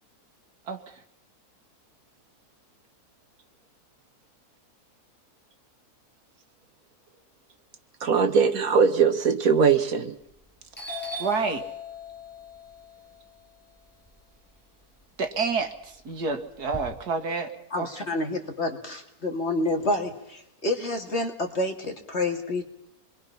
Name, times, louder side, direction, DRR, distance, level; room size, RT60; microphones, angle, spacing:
voice 1, 8.0-10.1, right 6 dB, 65° right, 1.6 m, -21 dB
Doorbell, 10.2-10.5 10.7-14.9 15.3-16.8, left 3 dB, 5° left, 6.1 m, -39 dB
voice 2, 11.2-11.6 15.2-17.5 17.8-17.9, right 4 dB, 80° right, 2.3 m, -28 dB
voice 3, 17.7-22.6, left 2 dB, 45° left, 2.5 m, -28 dB
28.0 x 22.5 x 5.7 m
omnidirectional pair, 1.7 m